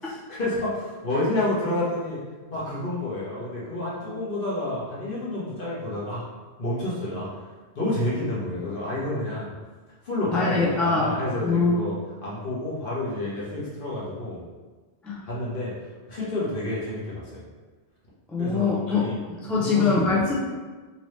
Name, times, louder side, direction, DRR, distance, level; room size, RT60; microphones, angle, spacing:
voice 1, 0.0-2.2 2.5-6.2 6.6-7.3 7.7-9.5 10.0-11.9 12.2-14.4 15.2-15.7 16.1-17.4 18.4-19.1 19.5-20.0, left 1 dB, 50° left, -7 dB, 1.1 m, -29 dB
voice 2, 10.3-11.1 11.4-12.0 15.0-15.2 18.3-20.3, left 4 dB, ahead, -6 dB, 0.3 m, -23 dB
3.0 x 2.8 x 3.1 m, 1.3 s
omnidirectional pair, 1.2 m